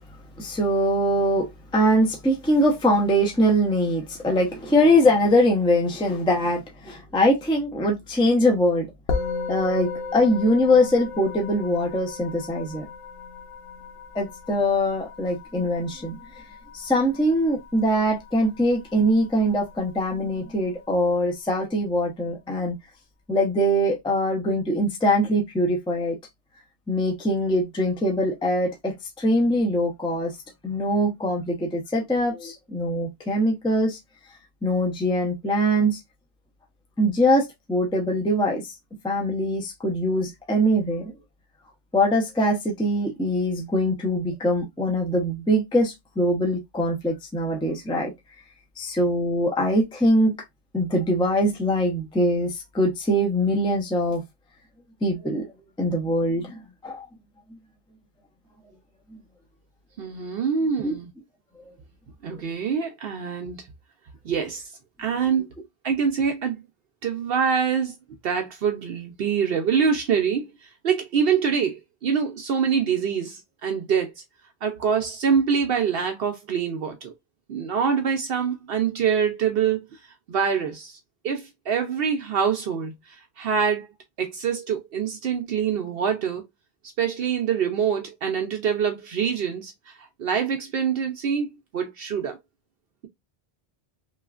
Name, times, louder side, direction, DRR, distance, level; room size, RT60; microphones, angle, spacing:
voice 1, 0.4-8.9 9.5-12.9 14.1-16.2 16.7-22.7 23.3-26.2 26.9-30.3 30.6-34.0 34.6-36.0 37.0-38.7 39.0-41.1 41.9-48.1 48.8-50.3 50.7-54.2 55.0-55.5 55.8-57.1 59.1-59.2 60.8-60.9, equal, 5° left, 0.5 m, -22 dB
Musical instrument, 9.1-18.6, left 4 dB, 75° left, 0.8 m, -35 dB
voice 2, 60.0-61.1 62.2-63.7 64.2-64.7 65.0-65.5 65.8-66.6 67.0-68.0 68.2-74.2 74.6-77.1 77.5-80.0 80.3-81.0 81.2-83.9 84.2-86.4 87.0-91.5 91.7-92.4, right 7 dB, 70° right, 0.7 m, -25 dB
3.0 x 2.4 x 2.3 m
omnidirectional pair, 1.1 m